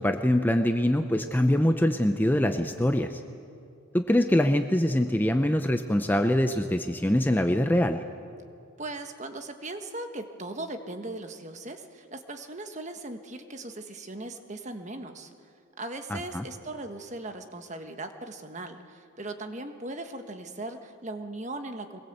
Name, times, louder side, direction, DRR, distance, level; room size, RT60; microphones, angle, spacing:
voice 1, 0.0-3.2 3.9-8.0 16.1-16.4, left 1 dB, 10° left, 7 dB, 0.7 m, -24 dB
voice 2, 8.8-15.3 15.8-22.0, right 2 dB, 35° right, 6 dB, 1.4 m, -38 dB
23.5 x 20.5 x 8.1 m, 2.4 s
head